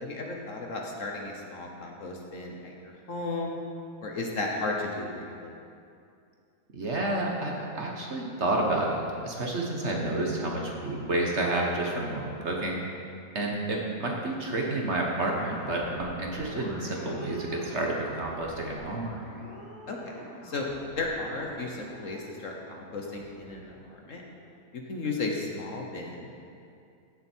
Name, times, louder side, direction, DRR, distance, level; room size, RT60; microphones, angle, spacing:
voice 1, 0.0-3.6 4.0-5.5 19.9-20.7 21.0-24.2 24.7-26.4, left 3 dB, 55° left, 0 dB, 1.3 m, -34 dB
voice 2, 6.7-12.8 13.3-19.1, right 2 dB, 45° right, -1 dB, 1.4 m, -30 dB
sound 1, 15.3-24.6, equal, 25° left, 2.1 m, -46 dB
15.5 x 7.6 x 4.5 m, 2.5 s
omnidirectional pair, 1.8 m